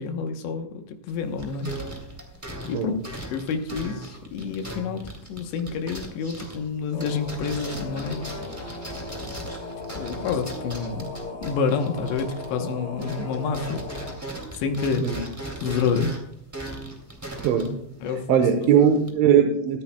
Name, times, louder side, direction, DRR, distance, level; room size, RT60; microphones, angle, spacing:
voice 1, 0.0-1.8 2.7-5.0 5.3-8.4 9.9-11.1 11.4-13.8 14.5-15.1 15.6-16.1 18.0-18.7, left 5 dB, 75° left, 5 dB, 3.0 m, -28 dB
sound 1, 1.1-12.7 13.0-19.1, right 1 dB, 10° right, 0.9 m, -38 dB
sound 2, 6.9-14.1, left 2 dB, 50° left, 3.8 m, -37 dB
voice 2, 17.4-17.8 18.3-19.8, right 8 dB, 85° right, 5 dB, 3.4 m, -20 dB
19.0 x 14.5 x 2.2 m, 0.71 s
omnidirectional pair, 5.5 m